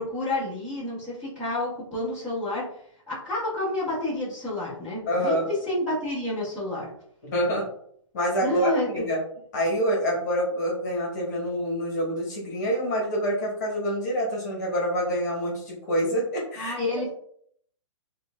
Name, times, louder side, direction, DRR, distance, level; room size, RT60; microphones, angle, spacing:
voice 1, 0.0-2.6 3.1-5.4 5.6-6.9 8.4-9.1 16.6-17.1, left 1 dB, 5° right, -12 dB, 1.4 m, -29 dB
voice 2, 5.1-5.5 7.2-7.7 8.1-9.2 9.5-16.7, equal, 35° left, -3 dB, 1.4 m, -26 dB
6.3 x 2.5 x 2.4 m, 0.65 s
hypercardioid pair, 175°, 17 cm